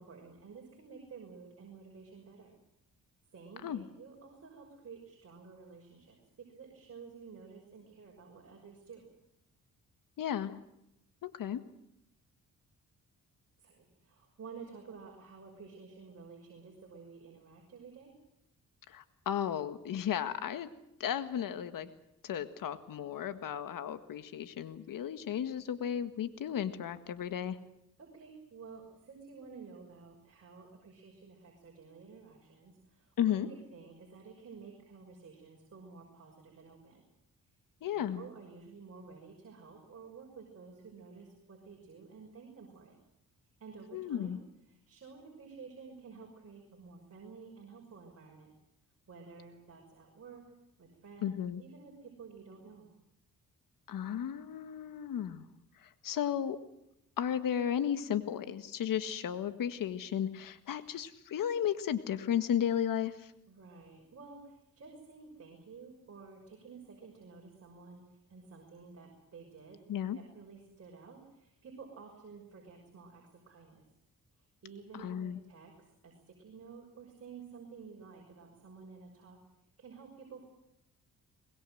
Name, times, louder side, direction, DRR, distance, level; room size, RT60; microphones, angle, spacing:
voice 1, 0.0-2.5 3.3-6.2 6.5-9.0 13.6-18.1 28.0-37.0 37.9-43.0 43.6-44.4 44.7-48.5 49.1-50.4 50.8-52.9 63.5-69.8 70.1-73.8 74.4-75.7 76.0-79.4 79.8-80.4, right 5 dB, 45° right, 0 dB, 6.2 m, -52 dB
voice 2, 10.2-10.5 11.2-11.6 18.9-20.7 21.0-21.9 22.2-27.6 33.2-33.5 37.8-38.2 43.9-44.4 51.2-51.6 53.9-55.5 56.0-56.6 57.2-63.1 69.9-70.2 74.9-75.4, left 9 dB, 75° left, 11 dB, 1.8 m, -34 dB
24.0 x 20.5 x 7.9 m, 0.83 s
cardioid pair, 85°, 33 cm